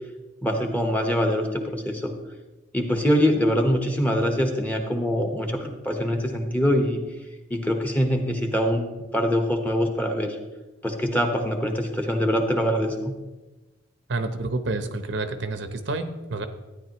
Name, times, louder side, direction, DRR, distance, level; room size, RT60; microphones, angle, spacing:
voice 1, 0.4-2.1 2.7-7.0 7.5-10.4 10.8-13.1, equal, 10° left, 3 dB, 1.1 m, -24 dB
voice 2, 14.1-16.5, right 2 dB, 70° right, 8 dB, 0.8 m, -29 dB
13.0 x 9.8 x 3.0 m, 1.1 s
head